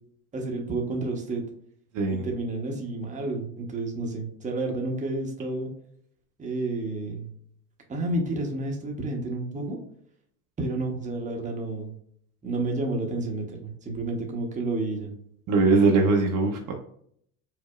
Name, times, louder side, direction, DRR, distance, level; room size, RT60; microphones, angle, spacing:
voice 1, 0.3-1.4 2.1-5.7 6.4-7.3 7.9-9.8 10.6-11.9 12.4-15.1, right 2 dB, 15° right, 1 dB, 0.8 m, -30 dB
voice 2, 1.9-2.3 15.5-16.7, right 3 dB, 45° right, 2 dB, 0.7 m, -21 dB
4.9 x 2.0 x 2.3 m, 0.66 s
hypercardioid pair, 85°, 44 cm